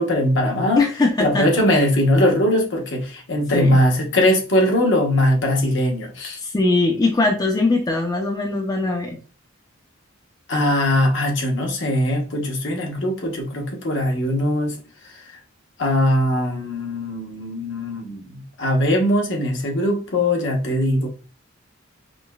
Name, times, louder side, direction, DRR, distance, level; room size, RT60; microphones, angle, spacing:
voice 1, 0.0-0.8 1.2-6.4 10.5-14.7 15.3-15.4 15.8-21.1, left 1 dB, 60° left, 0.9 m, -20 dB
voice 2, 0.8-1.5 3.5-3.8 6.4-9.2, left 3 dB, 20° left, 0.4 m, -20 dB
5.0 x 2.1 x 2.3 m
head